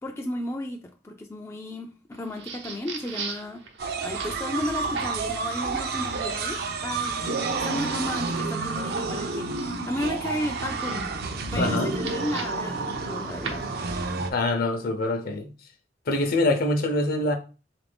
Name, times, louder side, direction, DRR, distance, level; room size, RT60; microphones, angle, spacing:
voice 1, 0.0-3.7 4.0-11.1 11.5-13.6, left 1 dB, 15° left, 0.3 m, -33 dB
sound 1, 2.1-14.1, right 5 dB, 90° right, 0.9 m, -42 dB
sound 2, 3.8-14.3, right 3 dB, 55° right, 0.5 m, -30 dB
voice 2, 11.6-11.9 14.3-15.5 16.1-17.4, left 2 dB, 55° left, 0.6 m, -24 dB
4.0 x 2.5 x 3.4 m
head